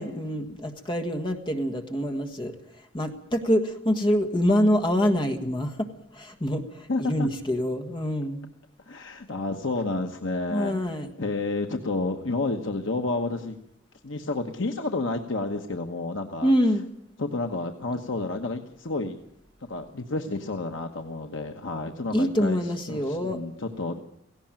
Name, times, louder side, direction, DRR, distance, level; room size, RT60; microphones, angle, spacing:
voice 1, 0.0-2.5 2.9-5.9 6.1-6.6 7.0-8.5 10.5-11.1 16.4-16.8 22.1-23.4, equal, 25° left, 5 dB, 1.6 m, -25 dB
voice 2, 6.9-7.3 8.9-13.6 14.0-16.5 17.2-19.2 19.6-24.0, left 2 dB, 70° left, 4 dB, 1.2 m, -30 dB
17.5 x 17.0 x 8.9 m, 0.74 s
head